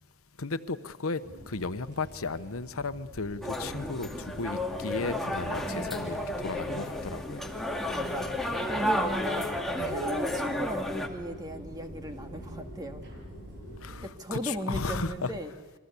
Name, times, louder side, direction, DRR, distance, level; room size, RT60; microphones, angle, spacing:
voice 1, 0.4-7.5 9.7-10.0 13.8-15.3, left 3 dB, 75° left, 1.0 m, -35 dB
sound 1, 1.2-14.1, right 1 dB, 55° right, 7.8 m, -48 dB
sound 2, 3.1-13.7, left 1 dB, 40° left, 7.6 m, -47 dB
sound 3, 3.4-11.1, left 1 dB, ahead, 2.2 m, -32 dB
voice 2, 7.9-13.0 14.0-15.5, equal, 20° right, 2.1 m, -37 dB
29.0 x 23.0 x 8.4 m
head